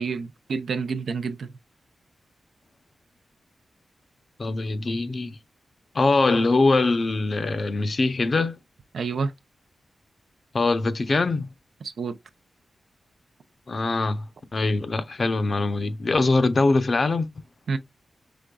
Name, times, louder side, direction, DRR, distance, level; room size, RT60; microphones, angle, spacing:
voice 1, 0.0-1.5 8.9-9.3 11.8-12.2 17.7-17.8, right 5 dB, 70° right, 0.5 m, -28 dB
voice 2, 4.4-5.4 5.9-8.6 10.5-11.5 13.7-14.2 14.5-17.3, left 3 dB, 40° left, 0.6 m, -22 dB
5.2 x 3.6 x 2.3 m
wide cardioid pair, 150°, 0 cm